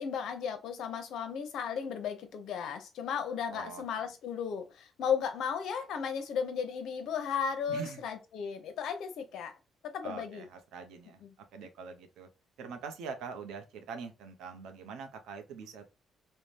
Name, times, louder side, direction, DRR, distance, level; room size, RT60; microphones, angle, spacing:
voice 1, 0.0-9.5 9.8-10.5 11.2-11.3, left 7 dB, 80° left, 0.6 m, -35 dB
voice 2, 3.5-4.0 7.7-8.0 10.0-11.2 11.5-12.3 12.6-15.8, right 5 dB, 85° right, 0.6 m, -44 dB
2.6 x 2.1 x 3.1 m
cardioid pair, 90°, 0 cm